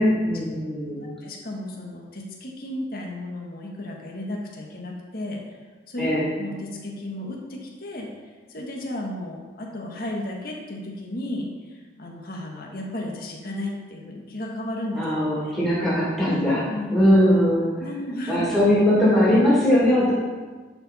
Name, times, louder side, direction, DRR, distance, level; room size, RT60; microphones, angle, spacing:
voice 1, 0.0-1.1 6.0-6.3 14.9-16.6 16.9-17.9 18.3-20.1, equal, ahead, -9 dB, 2.5 m, -20 dB
voice 2, 1.2-5.4 5.9-6.1 6.4-8.1 8.5-15.0 16.2-16.4 16.7-17.0 17.8-18.5, left 1 dB, 55° left, -1 dB, 1.4 m, -33 dB
11.0 x 4.9 x 4.1 m, 1.4 s
head